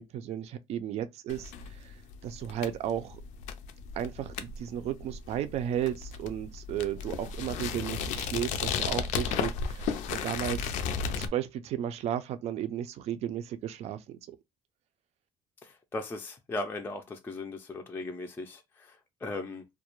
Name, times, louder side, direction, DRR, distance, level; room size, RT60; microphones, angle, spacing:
voice 1, 0.0-2.0 2.2-3.2 3.9-10.7 11.2-14.4, right 10 dB, 60° right, 0.4 m, -34 dB
sound 1, 1.3-11.3, left 6 dB, 80° left, 0.4 m, -34 dB
voice 2, 15.6-19.7, left 2 dB, 15° left, 0.4 m, -38 dB
2.3 x 2.1 x 2.9 m
cardioid pair, 105°, 12 cm